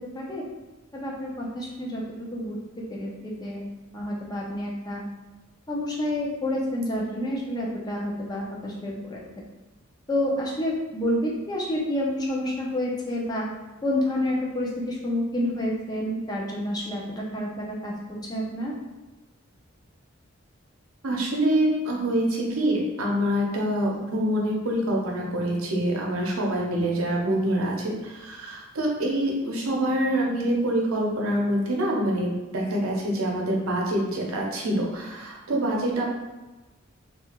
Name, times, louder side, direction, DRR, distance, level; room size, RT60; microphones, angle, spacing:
voice 1, 0.1-0.5 0.9-2.0 2.3-2.6 2.9-3.6 3.9-5.0 5.7-9.2 10.1-13.5 13.8-17.9 18.3-18.7, left 1 dB, 20° left, -3 dB, 0.5 m, -29 dB
voice 2, 21.0-36.1, right 1 dB, 85° right, -1 dB, 0.7 m, -25 dB
2.8 x 2.4 x 2.8 m, 1.1 s
head